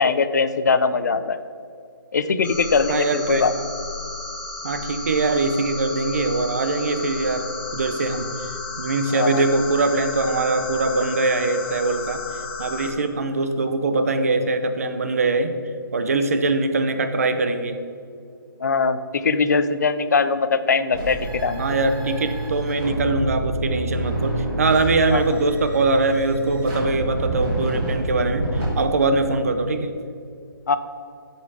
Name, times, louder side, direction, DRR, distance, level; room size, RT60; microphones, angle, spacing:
voice 1, 0.0-1.4 2.1-3.5 9.1-9.4 18.6-21.7 25.1-25.4 30.7-30.8, left 4 dB, 50° left, 12 dB, 0.5 m, -21 dB
sound 1, 2.4-12.9, left 3 dB, 25° left, 1.2 m, -33 dB
voice 2, 2.9-3.4 4.6-8.3 8.8-12.2 12.6-15.5 15.9-17.8 21.6-29.9, right 3 dB, 40° right, 9 dB, 0.7 m, -22 dB
sound 2, 20.9-28.6, right 1 dB, 15° right, 1.9 m, -28 dB
11.5 x 5.5 x 4.8 m, 2.4 s
hypercardioid pair, 175°, 12 cm